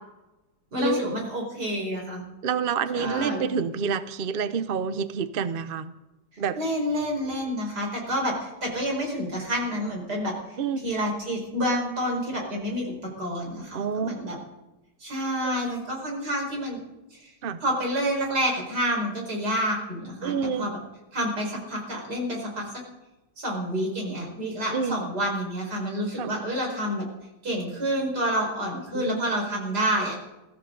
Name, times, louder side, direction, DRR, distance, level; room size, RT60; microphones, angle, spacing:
voice 1, 0.7-2.2 2.9-3.4 6.6-12.9 13.2-14.4 15.0-16.8 17.1-17.3 17.6-20.3 20.6-20.8 21.1-22.7 23.4-27.1 27.4-30.2, equal, 70° right, 0 dB, 5.5 m, -28 dB
voice 2, 2.4-5.9 6.4-6.6 10.6-10.8 13.7-14.1 15.4-15.5 17.4-17.6 20.2-20.7 24.7-25.0 26.2-26.3 28.9-29.4, right 6 dB, 50° right, 12 dB, 0.7 m, -28 dB
22.5 x 14.5 x 3.9 m, 1.0 s
omnidirectional pair, 1.8 m